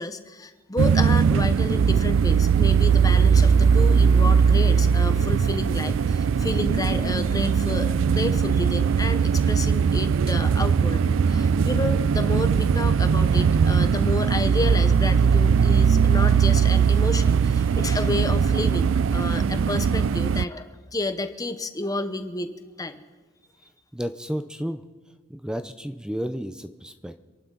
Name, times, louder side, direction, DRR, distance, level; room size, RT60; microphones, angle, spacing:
voice 1, 0.0-22.5 22.8-23.0, left 2 dB, 20° left, 9 dB, 0.9 m, -30 dB
sound 1, 0.8-20.5, right 6 dB, 70° right, 0.4 m, -20 dB
voice 2, 23.9-24.8 25.3-27.2, equal, 5° right, 9 dB, 0.5 m, -32 dB
26.5 x 11.5 x 3.9 m, 1.3 s
head